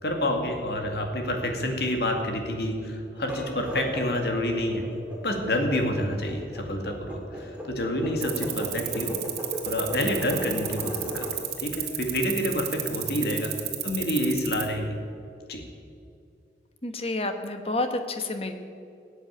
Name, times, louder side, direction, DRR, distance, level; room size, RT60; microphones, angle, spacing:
voice 1, 0.0-4.8 5.2-9.1 9.7-11.4 11.6-13.5 13.8-14.9 15.5-15.6, left 1 dB, 65° left, 3 dB, 2.3 m, -28 dB
sound 1, 3.2-11.4, equal, 10° right, 2.5 m, -36 dB
sound 2, 8.2-14.7, right 14 dB, 70° right, 1.8 m, -31 dB
voice 2, 16.8-18.5, left 2 dB, 35° left, 7 dB, 1.2 m, -30 dB
17.0 x 8.1 x 8.8 m, 2.4 s
head